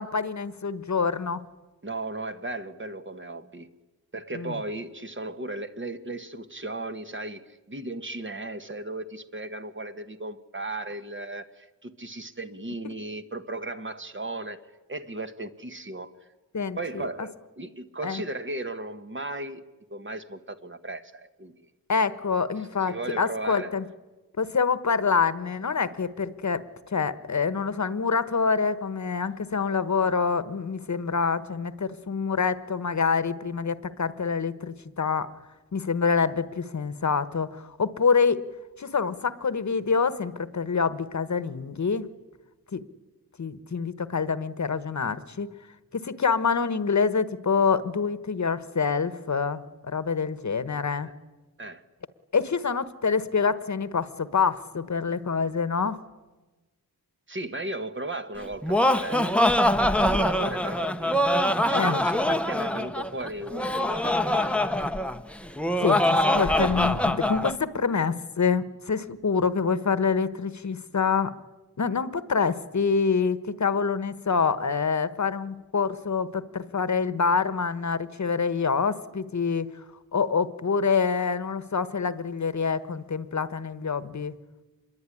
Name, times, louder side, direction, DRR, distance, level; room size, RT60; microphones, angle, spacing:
voice 1, 0.0-1.4 4.3-4.5 16.5-17.1 18.0-18.2 21.9-23.8 24.4-26.6 26.9-35.3 35.7-38.4 38.8-42.1 42.7-42.8 43.4-45.5 45.9-51.1 52.3-56.0 61.7-62.0 65.8-71.3 71.8-79.7 80.1-84.3, left 5 dB, 50° left, 14 dB, 1.2 m, -26 dB
voice 2, 1.8-3.7 4.1-14.6 14.9-16.1 16.8-19.6 19.9-21.7 22.6-23.7 51.0-51.1 51.6-51.8 57.3-59.4 60.0-61.2 61.7-64.8, right 2 dB, 35° right, 9 dB, 1.4 m, -36 dB
Laughter, 58.4-67.6, left 1 dB, 5° left, 0.9 m, -24 dB
26.0 x 22.0 x 9.9 m, 1.2 s
wide cardioid pair, 130°, 36 cm